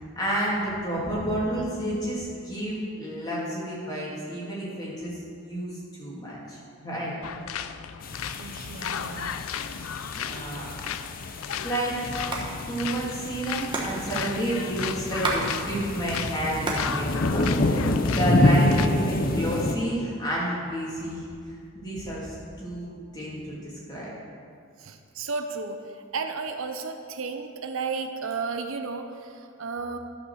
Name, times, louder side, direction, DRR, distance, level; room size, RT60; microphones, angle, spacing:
voice 1, 0.2-5.7 6.0-7.1 10.2-10.9 11.6-12.2 12.7-21.3 21.7-22.9 23.1-24.1, right 1 dB, 20° left, -6 dB, 2.7 m, -30 dB
sound 1, 7.2-18.9, left 8 dB, 85° left, 0.4 m, -35 dB
sound 2, 8.0-19.7, left 1 dB, 40° left, 0.6 m, -28 dB
voice 2, 8.4-9.4 24.8-30.0, right 4 dB, 75° right, 6 dB, 0.7 m, -33 dB
Hands, 12.1-12.5 12.7-12.8 13.0-15.5 15.8-16.9 17.3-18.1 18.6-19.2, right 3 dB, 25° right, 1.2 m, -32 dB
12.0 x 5.9 x 6.4 m, 2.3 s
head